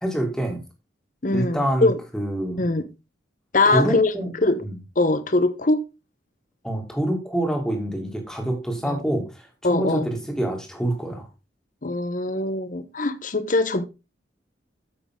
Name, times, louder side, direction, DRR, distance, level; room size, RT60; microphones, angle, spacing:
voice 1, 0.0-0.6 1.3-2.6 3.6-4.3 4.6-4.8 6.6-11.3, right 1 dB, 5° left, 2.4 m, -26 dB
voice 2, 1.2-2.0 2.6-2.9 3.5-4.1 4.4-4.7 5.0-5.8 8.8-9.0 9.6-10.1 11.8-13.8, left 2 dB, 45° left, 1.0 m, -22 dB
9.0 x 7.8 x 3.7 m
head